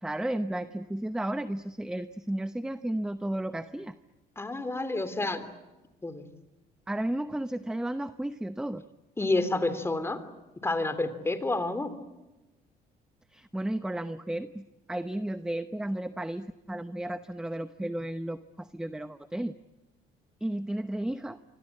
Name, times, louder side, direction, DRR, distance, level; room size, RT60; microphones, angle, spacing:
voice 1, 0.0-3.9 6.9-8.8 13.3-19.5 20.4-21.4, right 1 dB, 5° right, 11 dB, 0.9 m, -33 dB
voice 2, 4.4-5.4 6.0-6.3 9.2-10.2 10.6-11.9, left 2 dB, 15° left, 10 dB, 3.3 m, -29 dB
26.0 x 25.5 x 8.5 m, 1.1 s
cardioid pair, 110°, 17 cm